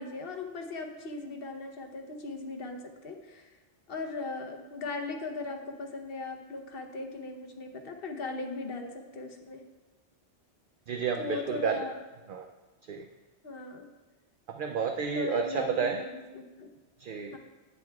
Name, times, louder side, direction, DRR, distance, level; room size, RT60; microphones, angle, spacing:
voice 1, 0.0-3.5 3.9-9.6 11.2-12.0 13.4-13.9 15.1-16.7 17.3-17.4, left 3 dB, 55° left, 4 dB, 1.0 m, -38 dB
voice 2, 10.9-11.8 12.3-12.5 12.9-13.0 14.5-16.0 17.0-17.3, right 6 dB, 60° right, 5 dB, 0.6 m, -31 dB
10.5 x 9.3 x 2.3 m, 1.2 s
omnidirectional pair, 1.2 m